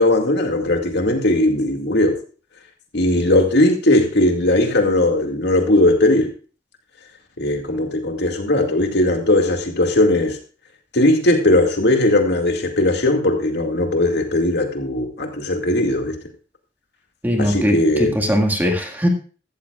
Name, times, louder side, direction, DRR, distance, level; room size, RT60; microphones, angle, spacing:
voice 1, 0.0-2.2 2.9-6.3 7.4-10.4 10.9-16.1 17.4-18.1, left 1 dB, 60° left, 3 dB, 2.2 m, -18 dB
voice 2, 17.2-19.1, equal, 10° right, 2 dB, 1.9 m, -20 dB
15.0 x 13.5 x 2.4 m, 0.38 s
head